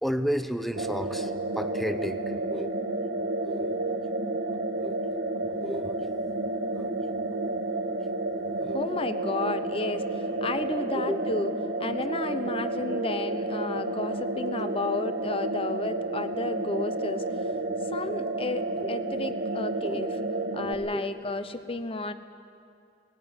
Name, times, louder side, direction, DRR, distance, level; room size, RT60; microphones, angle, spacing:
voice 1, 0.0-3.8 4.5-5.0 5.4-6.0 6.8-7.0 7.3-7.4 8.4-8.9 11.1-11.2 18.8-19.0 19.8-20.0 20.9-21.0, equal, ahead, 9 dB, 0.8 m, -34 dB
sound 1, 0.8-20.7, right 2 dB, 70° right, 1.5 m, -31 dB
voice 2, 8.7-11.5 11.8-17.2 17.9-20.2 20.5-22.1, left 2 dB, 30° left, 11 dB, 0.9 m, -32 dB
18.5 x 16.5 x 9.8 m, 2.4 s
head